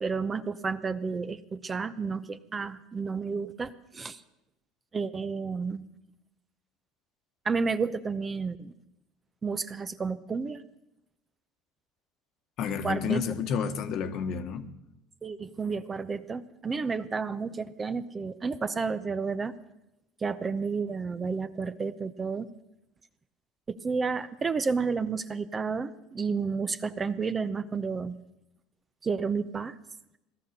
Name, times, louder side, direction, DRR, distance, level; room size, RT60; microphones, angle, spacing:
voice 1, 0.0-4.2 4.9-5.8 7.4-8.7 9.4-10.6 12.8-13.2 15.2-19.5 20.2-22.5 23.7-28.2 29.0-29.8, right 5 dB, 25° right, 0.7 m, -31 dB
voice 2, 12.6-14.7, left 6 dB, 55° left, 1.3 m, -30 dB
17.0 x 12.5 x 6.6 m
supercardioid pair, 110°, 0 cm